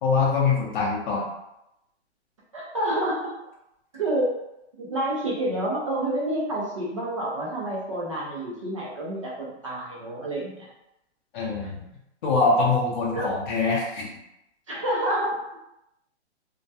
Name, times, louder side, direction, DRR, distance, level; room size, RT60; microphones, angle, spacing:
voice 1, 0.0-1.3 11.3-11.8 12.2-14.1, left 4 dB, 45° left, -4 dB, 0.5 m, -23 dB
voice 2, 2.5-3.3 3.9-4.3 4.8-10.7 11.6-11.7 13.1-13.4 14.7-15.6, right 1 dB, 30° right, -5 dB, 0.4 m, -28 dB
2.2 x 2.1 x 2.6 m, 0.85 s
hypercardioid pair, 155°, 35 cm